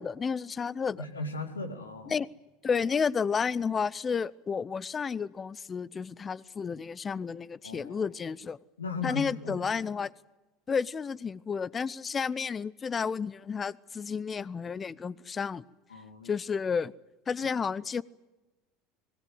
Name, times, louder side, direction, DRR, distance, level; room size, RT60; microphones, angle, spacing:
voice 1, 0.0-1.1 2.1-2.3 2.6-8.6 9.0-10.1 10.7-15.6 16.2-16.9 17.3-18.0, left 6 dB, 25° left, 0.8 m, -31 dB
voice 2, 1.0-2.2 7.6-8.1 8.8-9.7 15.9-16.3, left 3 dB, 90° left, 2.4 m, -37 dB
26.0 x 21.0 x 8.0 m
figure-of-eight pair, 75°, 0 cm